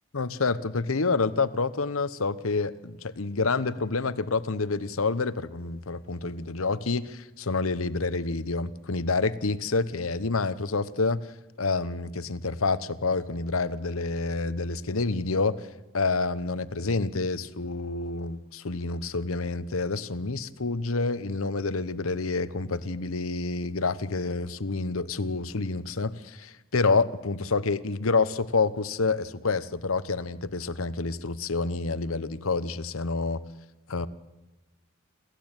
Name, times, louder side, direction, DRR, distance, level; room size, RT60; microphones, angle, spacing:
voice 1, 0.1-11.2 11.6-15.6 15.9-33.4 33.9-34.1, left 3 dB, 90° left, 15 dB, 1.0 m, -28 dB
27.5 x 15.0 x 9.0 m, 1.1 s
head